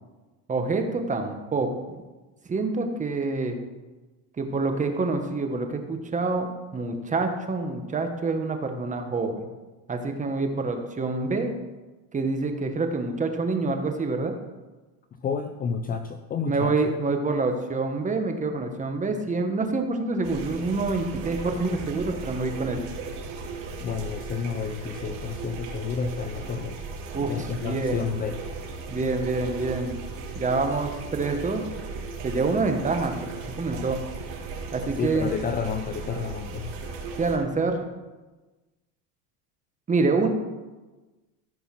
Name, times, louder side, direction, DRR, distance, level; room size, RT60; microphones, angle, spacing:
voice 1, 0.5-1.7 2.5-3.6 4.4-6.5 6.7-9.4 9.9-11.5 12.1-14.3 16.5-22.8 27.1-28.0 28.9-29.9 30.3-31.6 32.2-34.0 34.7-35.3 37.2-37.8 39.9-40.3, right 3 dB, 20° right, 5 dB, 1.4 m, -26 dB
voice 2, 15.2-16.7 23.8-26.8 27.2-28.4 35.0-36.8, left 6 dB, 25° left, 7 dB, 0.5 m, -30 dB
sound 1, 20.2-37.4, right 4 dB, 80° right, 2.9 m, -37 dB
14.5 x 5.5 x 6.0 m, 1.2 s
supercardioid pair, 130°, 39 cm